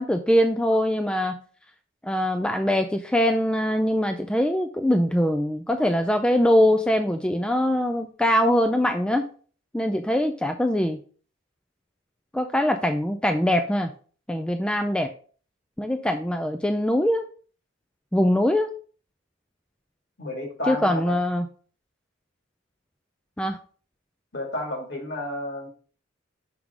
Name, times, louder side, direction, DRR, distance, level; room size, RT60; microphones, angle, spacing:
voice 1, 0.0-1.4 2.0-9.3 9.7-11.0 12.3-13.9 14.3-15.1 15.8-17.2 18.1-18.7 20.7-21.5 23.4-23.6, left 1 dB, 5° left, 6 dB, 0.3 m, -22 dB
voice 2, 20.2-21.2 24.3-25.7, left 1 dB, 60° left, 1 dB, 2.3 m, -31 dB
5.9 x 3.7 x 5.0 m, 0.42 s
head